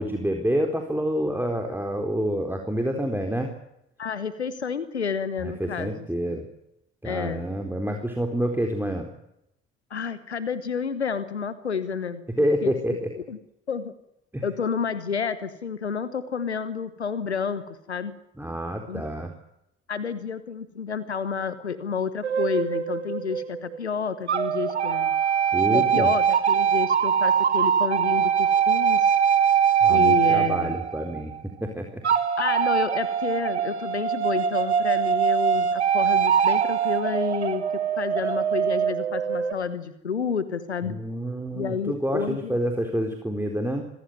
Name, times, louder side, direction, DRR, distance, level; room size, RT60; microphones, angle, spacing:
voice 1, 0.0-3.5 5.4-6.5 7.0-9.1 12.4-13.1 14.3-14.4 18.4-19.3 25.5-26.1 29.8-32.0 40.9-43.9, equal, 5° right, 3 dB, 4.1 m, -28 dB
voice 2, 4.0-6.0 7.0-7.5 9.9-12.2 12.6-12.7 13.3-13.4 13.7-13.9 14.4-18.1 18.9-19.0 19.9-25.1 25.7-29.2 29.9-30.8 32.4-37.6 38.0-41.0 41.5-42.6, left 6 dB, 90° left, 15 dB, 1.1 m, -30 dB
sound 1, 22.2-23.8 24.3-31.4 32.0-39.5, right 8 dB, 85° right, 1.4 m, -22 dB
26.0 x 16.0 x 9.3 m, 0.82 s
figure-of-eight pair, 45°, 32 cm